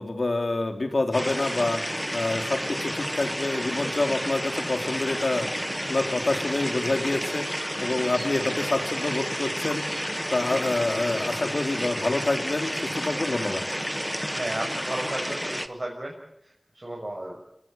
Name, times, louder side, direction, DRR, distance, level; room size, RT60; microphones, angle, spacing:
voice 1, 0.0-1.8 2.1-5.5 5.9-9.8 10.3-13.6, left 2 dB, 70° left, 5 dB, 3.6 m, -27 dB
sound 1, 1.1-15.7, equal, ahead, 1.4 m, -31 dB
voice 2, 14.4-16.1 16.7-17.4, right 1 dB, 45° right, -1 dB, 6.2 m, -33 dB
27.5 x 18.5 x 9.0 m, 0.84 s
wide cardioid pair, 45°, 0 cm